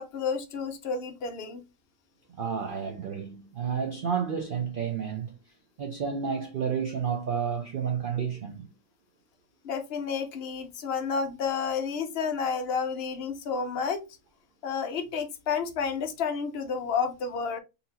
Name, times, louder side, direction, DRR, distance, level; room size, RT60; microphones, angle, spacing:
voice 1, 0.0-1.6 9.6-14.0 14.6-17.6, left 6 dB, 60° left, 0.6 m, -30 dB
voice 2, 2.3-5.4 5.8-8.7, right 7 dB, 65° right, 0.5 m, -31 dB
4.0 x 2.8 x 2.7 m
omnidirectional pair, 1.6 m